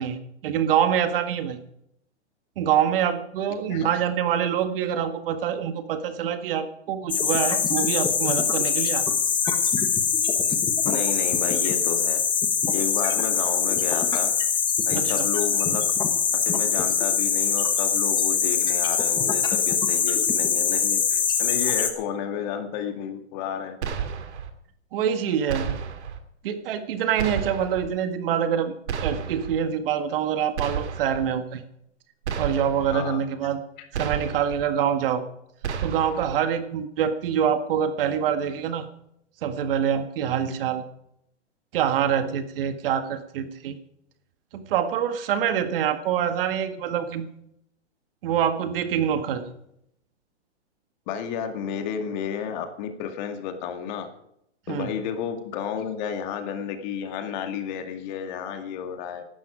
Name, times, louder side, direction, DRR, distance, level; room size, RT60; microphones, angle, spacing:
voice 1, 0.0-1.6 2.6-9.0 14.9-15.3 24.9-25.7 26.4-28.7 29.0-31.7 32.4-33.6 33.9-35.2 35.8-38.9 39.4-40.8 41.7-43.8 44.5-47.3 48.2-49.5 54.7-55.0, right 8 dB, 50° right, 9 dB, 1.8 m, -25 dB
sound 1, 7.1-21.9, left 6 dB, 15° left, 1.4 m, -23 dB
voice 2, 10.8-12.2 12.7-14.3 14.9-15.8 16.3-23.8 32.9-33.2 33.8-33.9 51.1-54.1 54.7-59.2, left 8 dB, 40° left, 6 dB, 2.1 m, -32 dB
sound 2, 23.8-24.5 25.5-26.2 27.2-27.9 28.9-29.6 30.6-31.3 32.2-32.9 33.9-34.6 35.6-36.3, right 7 dB, 70° right, 2.3 m, -31 dB
16.0 x 12.0 x 5.0 m, 0.74 s
hypercardioid pair, 145°, 35 cm